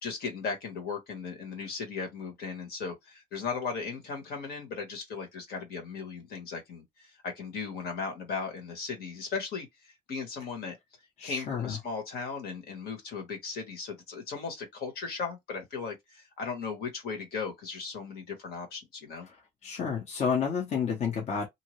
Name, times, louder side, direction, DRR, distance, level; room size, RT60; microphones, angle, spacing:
voice 1, 0.0-10.8 11.2-19.3, left 5 dB, 70° left, 1.5 m, -37 dB
voice 2, 11.2-11.8 19.3-19.4 19.6-21.5, left 6 dB, 45° left, 1.0 m, -30 dB
2.8 x 2.4 x 3.1 m
cardioid pair, 110°, 17 cm